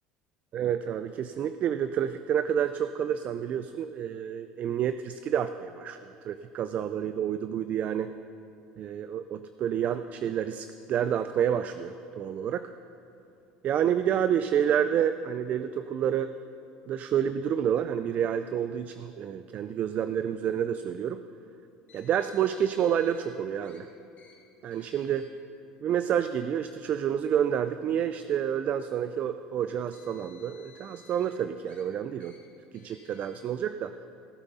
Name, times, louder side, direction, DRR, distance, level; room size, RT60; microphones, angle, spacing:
voice 1, 0.5-8.1 8.8-12.7 13.6-16.3 16.9-21.2 21.9-23.9 24.6-25.3 25.8-32.3 32.7-33.9, right 9 dB, 45° right, 11 dB, 0.4 m, -29 dB
Car, 21.9-23.2 23.6-23.8 24.2-24.3 24.7-25.3 26.1-26.3 27.2-27.3 29.6-31.3 31.7-31.8 32.2-32.4 32.7-33.3, left 6 dB, 45° left, 2.9 m, -57 dB
18.0 x 7.9 x 4.1 m, 2.7 s
supercardioid pair, 100°, 3 cm